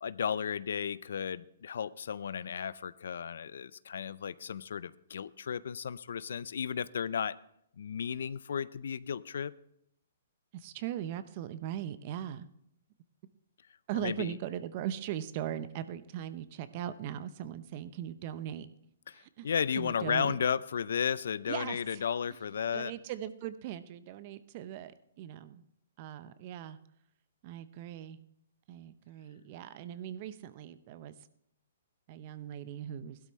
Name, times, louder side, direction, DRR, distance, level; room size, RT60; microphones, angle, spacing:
voice 1, 0.0-7.4 7.8-9.5 13.9-14.4 19.1-22.9, left 7 dB, 70° left, 18 dB, 0.4 m, -34 dB
voice 2, 10.5-12.5 13.9-18.7 19.1-19.5 19.7-20.4 21.5-22.0 22.3-22.4 22.7-24.9 25.2-25.6 26.0-26.8 27.4-28.2 28.7-31.2 32.1-33.2, right 11 dB, 45° right, 13 dB, 0.8 m, -39 dB
16.0 x 12.0 x 3.2 m, 0.73 s
hypercardioid pair, 130°, 0 cm